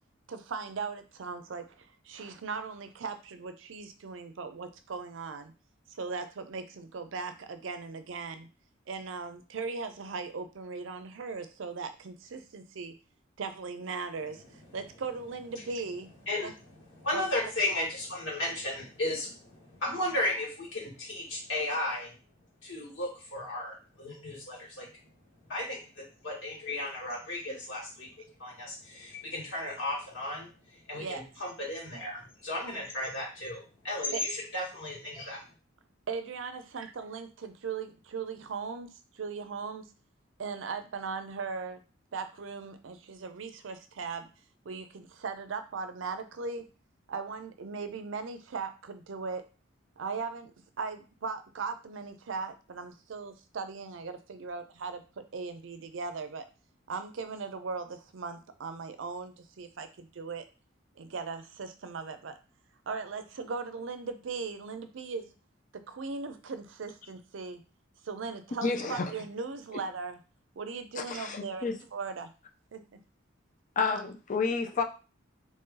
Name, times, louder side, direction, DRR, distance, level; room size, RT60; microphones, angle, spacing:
voice 1, 0.3-5.5 5.9-8.5 8.9-12.9 13.4-16.1 16.4-16.5 17.1-17.2 30.9-31.2 34.1-34.2 36.1-38.9 39.1-39.8 40.4-41.8 42.1-44.3 44.6-46.7 47.1-49.4 50.0-50.5 50.8-56.5 56.9-60.4 61.0-62.3 62.9-65.3 65.7-67.6 68.0-70.2 70.6-72.3 72.7-73.0, right 4 dB, 70° right, 9 dB, 0.5 m, -38 dB
voice 2, 16.9-22.1 22.6-24.9 25.5-35.4, left 1 dB, 70° left, -5 dB, 2.1 m, -35 dB
voice 3, 68.6-69.1 71.0-71.7 73.8-74.8, left 4 dB, 40° left, 5 dB, 0.5 m, -30 dB
3.1 x 2.7 x 3.7 m, 0.33 s
head